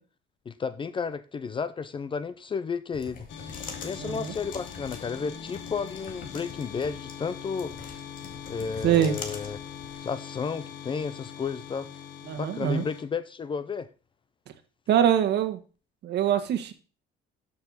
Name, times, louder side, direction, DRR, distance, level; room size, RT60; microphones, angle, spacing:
voice 1, 0.5-3.3 3.8-7.8 8.5-9.6 10.0-11.9 12.4-13.9, left 5 dB, 25° left, 0.5 m, -32 dB
sound 1, 2.9-9.9, left 4 dB, 45° left, 2.1 m, -44 dB
sound 2, 3.3-13.0, left 9 dB, 70° left, 1.4 m, -42 dB
voice 2, 4.0-4.3 8.8-9.2 12.3-12.8 14.9-15.6 16.0-16.7, right 9 dB, 60° right, 1.5 m, -24 dB
12.5 x 6.6 x 4.1 m
cardioid pair, 155°, 20 cm